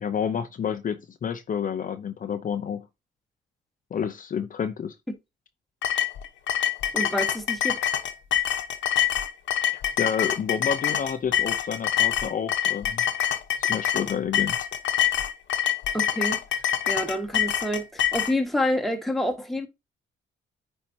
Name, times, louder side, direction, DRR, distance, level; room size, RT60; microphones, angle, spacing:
voice 1, 0.0-2.9 3.9-5.0 9.7-13.0 13.7-14.6, left 7 dB, 45° left, 0.7 m, -29 dB
sound 1, 5.8-18.3, left 10 dB, 70° left, 1.1 m, -25 dB
voice 2, 6.9-7.8 15.9-16.4 16.9-19.7, left 1 dB, ahead, 1.6 m, -27 dB
8.9 x 4.4 x 2.8 m
cardioid pair, 90°, 20 cm